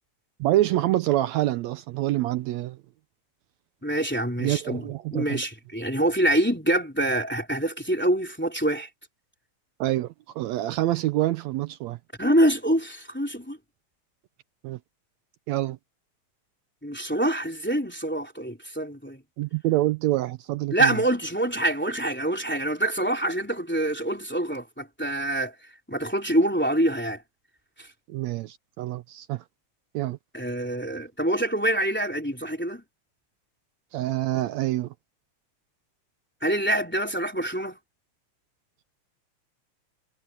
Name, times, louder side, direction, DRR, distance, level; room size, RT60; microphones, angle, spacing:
voice 1, 0.4-2.8 4.4-5.4 9.8-12.0 14.6-14.8 15.5-15.8 19.4-21.0 28.1-29.4 29.9-30.2 33.9-34.9, right 15 dB, 80° right, 1.8 m, -26 dB
voice 2, 3.8-4.8 5.1-8.9 12.2-13.6 16.8-19.2 20.7-25.5 25.9-27.2 27.8-27.9 30.3-32.8 36.4-37.8, right 1 dB, 5° left, 2.8 m, -25 dB
omnidirectional pair, 3.4 m